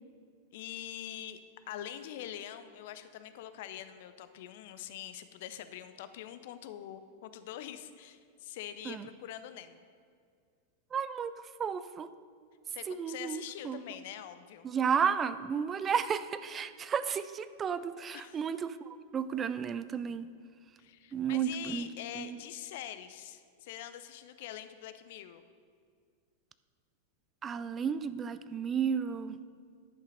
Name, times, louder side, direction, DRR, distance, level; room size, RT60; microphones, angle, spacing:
voice 1, 0.5-1.4 1.7-9.8 12.7-14.7 18.1-18.4 20.8-25.5, left 11 dB, 50° left, 11 dB, 0.5 m, -44 dB
voice 2, 10.9-11.3 11.6-12.1 12.9-13.8 14.6-18.8 19.1-20.3 21.1-21.9 22.2-22.4 27.4-29.4, right 7 dB, 25° right, 14 dB, 0.3 m, -32 dB
10.5 x 5.6 x 5.0 m, 2.2 s
figure-of-eight pair, 90°, 0 cm